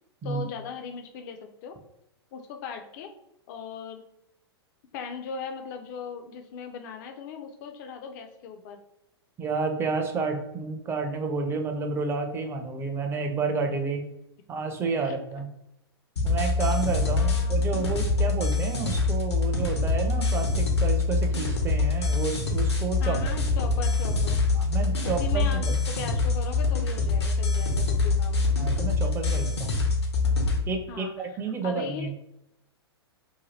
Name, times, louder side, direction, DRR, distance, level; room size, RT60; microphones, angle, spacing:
voice 1, 0.2-1.8 2.3-3.1 3.5-4.0 4.9-8.8 15.0-15.2 17.0-17.6 23.0-24.4 25.0-28.4 30.9-31.3 31.6-32.1, left 6 dB, 45° left, 6 dB, 0.4 m, -38 dB
voice 2, 9.4-14.0 14.5-15.5 16.2-23.2 24.5-26.0 28.6-29.7 30.7-32.1, right 4 dB, 15° right, 4 dB, 0.4 m, -30 dB
sound 1, 16.2-30.6, left 3 dB, 80° left, 0.7 m, -25 dB
2.7 x 2.2 x 3.1 m, 0.83 s
figure-of-eight pair, 105°, 14 cm